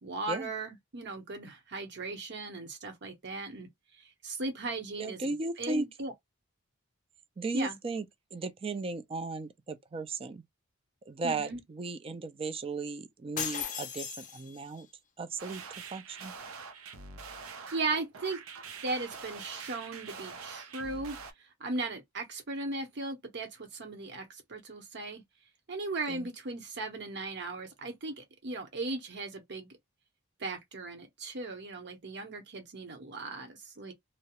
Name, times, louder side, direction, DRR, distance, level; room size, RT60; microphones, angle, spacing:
voice 1, 0.0-3.7 4.0-6.1 7.5-7.8 11.2-11.6 17.7-18.4 18.8-21.2 21.6-25.2 25.7-29.7 30.4-33.9, right 3 dB, 55° right, 0.9 m, -37 dB
voice 2, 5.0-5.9 7.4-8.1 8.3-10.4 11.1-14.9 15.2-15.6 15.9-16.3 26.1-26.3, right 3 dB, 25° right, 0.4 m, -36 dB
sound 1, 13.4-14.8, left 8 dB, 40° left, 0.5 m, -37 dB
sound 2, 15.4-21.3, right 5 dB, 90° right, 0.6 m, -45 dB
2.3 x 2.0 x 2.8 m
head